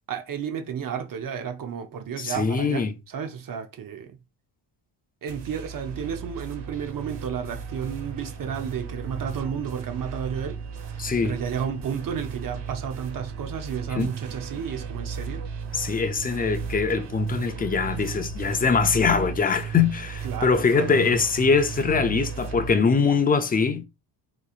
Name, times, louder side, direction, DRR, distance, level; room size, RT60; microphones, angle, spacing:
voice 1, 0.1-4.2 5.2-10.6 10.9-15.4 20.2-21.2, right 7 dB, 45° right, 0.7 m, -32 dB
voice 2, 2.2-2.9 11.0-11.4 14.0-14.1 15.7-23.8, left 5 dB, 20° left, 0.3 m, -23 dB
sound 1, 5.3-22.7, right 6 dB, 65° right, 1.0 m, -35 dB
3.8 x 3.0 x 2.3 m
cardioid pair, 110°, 46 cm